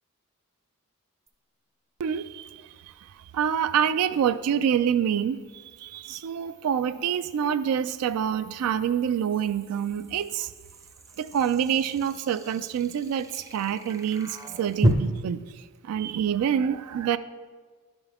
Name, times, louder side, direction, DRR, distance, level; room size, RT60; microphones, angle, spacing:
sound 1, 1.3-1.4 4.8-14.9, equal, 15° right, 0.5 m, -35 dB
voice 1, 2.0-2.5 3.3-5.4 5.8-10.5 11.2-15.4 15.8-17.2, right 8 dB, 80° right, 13 dB, 0.3 m, -26 dB
11.0 x 5.4 x 3.5 m, 1.5 s
head